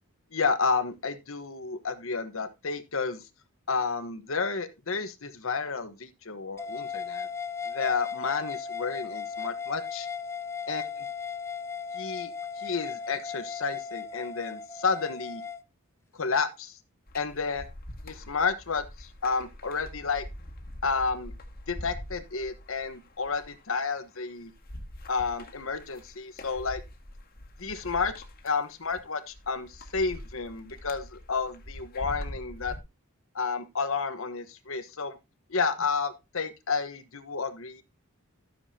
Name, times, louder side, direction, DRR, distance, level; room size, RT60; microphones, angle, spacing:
voice 1, 0.3-3.3 3.7-7.3 7.6-10.1 10.7-10.8 11.9-15.4 16.1-16.8 17.1-17.6 18.0-20.2 20.8-21.3 21.7-24.5 25.1-26.8 27.6-28.1 28.4-32.7 33.3-35.2 35.5-37.8, left 4 dB, 65° left, 1.2 m, -31 dB
sound 1, 6.6-15.6, left 6 dB, 10° left, 0.5 m, -36 dB
sound 2, 17.1-32.8, left 1 dB, 45° left, 1.8 m, -44 dB
13.5 x 7.1 x 2.8 m
head